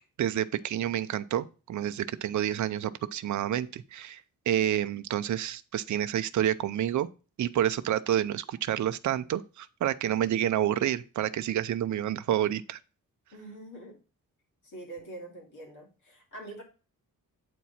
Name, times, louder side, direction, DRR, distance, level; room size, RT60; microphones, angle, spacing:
voice 1, 0.2-7.1 7.4-12.8, right 11 dB, 55° right, 0.5 m, -29 dB
voice 2, 13.3-14.0 14.6-16.6, right 2 dB, 60° left, 2.8 m, -44 dB
8.2 x 4.6 x 4.1 m
wide cardioid pair, 160°, 34 cm